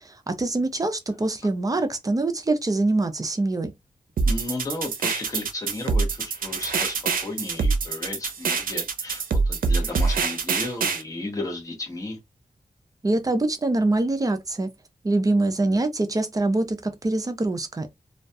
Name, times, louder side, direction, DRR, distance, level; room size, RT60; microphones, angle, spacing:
voice 1, 0.0-3.7 13.0-14.7 15.0-17.9, right 2 dB, 25° right, 0.4 m, -24 dB
sound 1, 4.2-11.0, right 4 dB, 90° right, 0.4 m, -25 dB
voice 2, 4.3-12.2, left 2 dB, 25° left, 0.7 m, -34 dB
2.3 x 2.2 x 2.6 m
wide cardioid pair, 140°, 14 cm